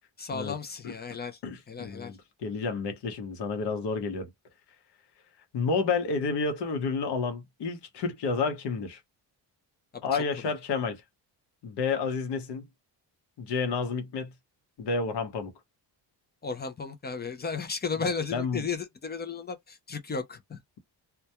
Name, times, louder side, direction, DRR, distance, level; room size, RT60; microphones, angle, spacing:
voice 1, 0.2-1.4 1.7-2.1 9.9-10.2 16.4-20.6, left 5 dB, 25° left, 0.3 m, -34 dB
voice 2, 1.4-4.3 5.5-9.0 10.0-11.0 11.6-12.7 13.4-14.3 14.8-15.5 18.3-18.6, left 4 dB, 65° left, 0.9 m, -30 dB
2.2 x 2.2 x 2.8 m
cardioid pair, 155°, 44 cm